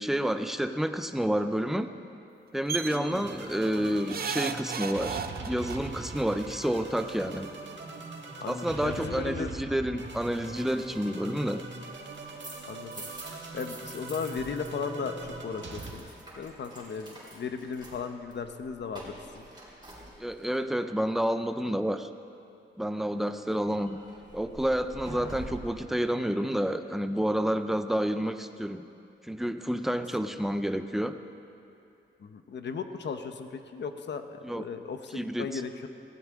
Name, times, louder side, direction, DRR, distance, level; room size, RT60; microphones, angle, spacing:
voice 1, 0.0-1.9 2.5-7.5 8.5-11.6 20.2-22.1 22.8-24.0 24.3-28.8 29.2-31.2 34.4-34.6 35.1-35.6, equal, ahead, 8 dB, 0.6 m, -29 dB
sound 1, 2.7-3.0 4.1-5.8 7.0-7.1 7.3-7.4, right 7 dB, 55° right, 0.6 m, -33 dB
voice 2, 2.9-3.4 8.4-9.6 12.6-16.1 16.4-19.4 23.1-23.4 32.2-35.9, left 5 dB, 70° left, 7 dB, 0.9 m, -37 dB
sound 2, 3.1-15.9, right 3 dB, 75° right, 1.6 m, -42 dB
sound 3, 12.1-14.7 15.0-20.6 23.6-25.8, right 2 dB, 25° right, 4.0 m, -46 dB
19.0 x 16.0 x 3.7 m, 2.7 s
wide cardioid pair, 125°, 19 cm